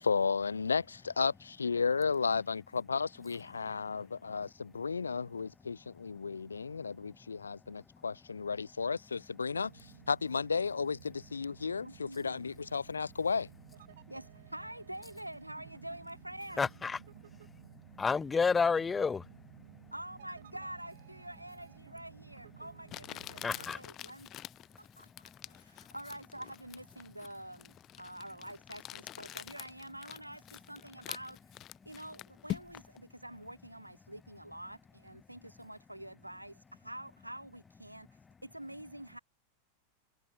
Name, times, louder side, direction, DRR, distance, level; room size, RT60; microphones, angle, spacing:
voice 1, 0.0-13.5, left 5 dB, 75° left, 0.5 m, -33 dB
voice 2, 3.7-4.0 4.3-4.4 6.2-6.4 6.7-8.0 13.9-14.1 16.6-19.9 23.3-24.1 24.7-25.9, left 5 dB, 15° left, 1.1 m, -35 dB
sound 1, 9.5-23.7, right 11 dB, 60° right, 1.4 m, -55 dB
voice 3, 11.8-12.5 14.1-16.7 19.9-24.3 24.8-31.4 31.9-38.1 38.4-39.2, right 1 dB, 85° right, 2.1 m, -47 dB
Crumpling crinkling, 22.0-22.1 22.9-33.0, left 14 dB, 35° left, 1.5 m, -46 dB
figure-of-eight pair, 90°, 0 cm